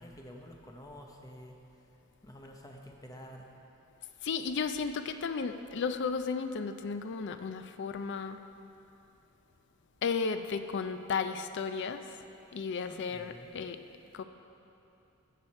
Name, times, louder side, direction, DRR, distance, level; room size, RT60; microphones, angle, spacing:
voice 1, 0.0-1.6 2.2-3.5 12.9-13.5, equal, 15° left, 1 dB, 0.8 m, -49 dB
voice 2, 4.2-8.4 10.0-12.2 12.5-13.8 14.1-14.2, left 5 dB, 55° left, 9 dB, 0.4 m, -34 dB
13.5 x 6.3 x 4.3 m, 2.8 s
head